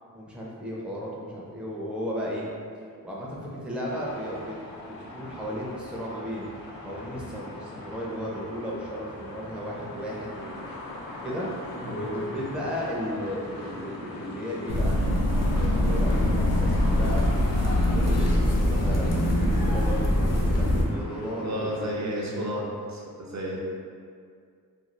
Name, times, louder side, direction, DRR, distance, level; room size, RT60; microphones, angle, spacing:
voice 1, 0.1-2.5 3.0-4.6 4.8-6.5 6.8-10.7 11.2-11.5 11.8-15.0 15.4-17.3 17.7-22.5, equal, 5° right, -5 dB, 0.4 m, -34 dB
sound 1, 3.8-21.9, left 2 dB, 85° left, 0.5 m, -40 dB
sound 2, 14.7-20.8, left 1 dB, 50° left, 0.6 m, -23 dB
voice 2, 21.4-22.6 22.9-23.6, equal, 50° right, -3 dB, 0.5 m, -32 dB
2.5 x 2.3 x 3.1 m, 2.2 s
cardioid pair, 85°, 35 cm